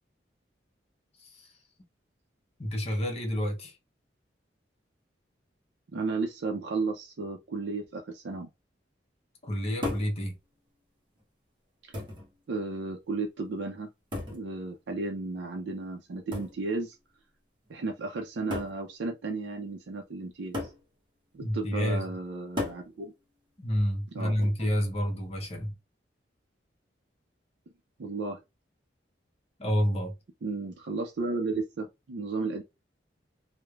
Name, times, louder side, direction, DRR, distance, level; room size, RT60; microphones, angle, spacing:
voice 1, 1.2-1.5 2.6-3.8 9.4-10.3 21.4-22.1 23.6-25.7 29.6-30.1, equal, 35° left, 0.7 m, -29 dB
voice 2, 5.9-8.5 11.8-11.9 12.5-13.9 14.3-17.0 17.7-20.7 21.3-23.1 24.1-24.5 28.0-28.4 30.4-32.6, right 3 dB, 65° right, 0.5 m, -34 dB
sound 1, 9.8-10.2 11.2-11.3 11.9-12.3 14.1-14.5 16.3-16.6 17.7-17.8 18.5-18.8 20.5-20.8 22.6-22.9 24.4-24.8, left 2 dB, 25° right, 0.8 m, -35 dB
3.1 x 2.1 x 2.3 m
head